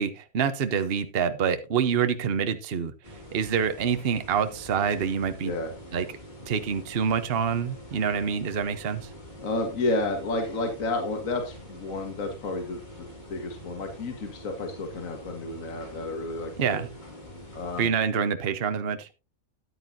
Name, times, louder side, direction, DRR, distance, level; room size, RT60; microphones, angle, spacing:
voice 1, 0.0-2.9 3.3-5.5 5.9-6.0 6.5-9.1 16.6-16.9 17.8-19.1, right 7 dB, 45° right, 1.0 m, -26 dB
sound 1, 3.0-17.9, equal, 30° left, 2.7 m, -45 dB
voice 2, 5.4-5.7 9.4-16.9 17.5-18.0, left 2 dB, 65° left, 1.9 m, -31 dB
13.5 x 10.0 x 2.7 m
omnidirectional pair, 1.5 m